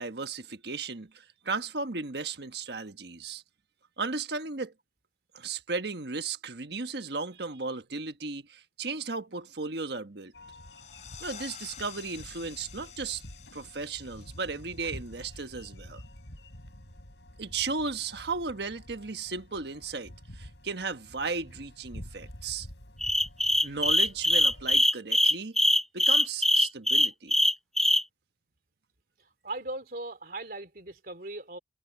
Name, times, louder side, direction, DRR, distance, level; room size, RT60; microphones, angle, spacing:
voice 1, 0.0-3.4 4.0-4.7 5.3-10.3 11.2-13.2 13.5-16.0 17.4-22.7 23.6-25.6 25.9-27.4, right 4 dB, 70° right, 1.4 m, -35 dB
sound 1, 10.3-24.8, left 1 dB, 90° left, 6.6 m, -48 dB
sound 2, 10.4-15.8, left 9 dB, 40° left, 4.1 m, -49 dB
sound 3, 23.0-28.0, left 1 dB, ahead, 0.4 m, -22 dB
voice 2, 29.2-31.6, right 2 dB, 55° right, 3.4 m, -39 dB
head